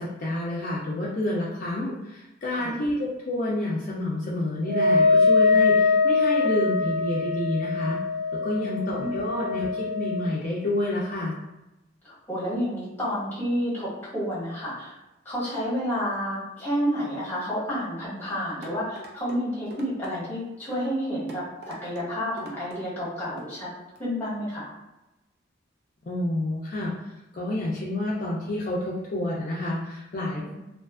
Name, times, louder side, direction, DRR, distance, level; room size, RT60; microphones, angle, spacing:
voice 1, 0.0-8.0 8.4-11.3 26.1-26.9 27.3-30.5, left 1 dB, 50° left, -6 dB, 0.4 m, -29 dB
Wind instrument woodwind instrument, 4.7-10.3, left 4 dB, 20° right, 0.6 m, -23 dB
voice 2, 8.5-9.3 12.0-15.0 15.2-23.7 24.0-24.7 30.4-30.5, equal, 10° left, -9 dB, 1.2 m, -30 dB
sound 1, 18.6-19.4 19.7-20.1 20.7-20.9 21.3-22.1 22.4-22.8 23.4-23.5 24.0-24.1, right 2 dB, 60° right, 0.5 m, -42 dB
2.4 x 2.3 x 2.3 m, 0.96 s
head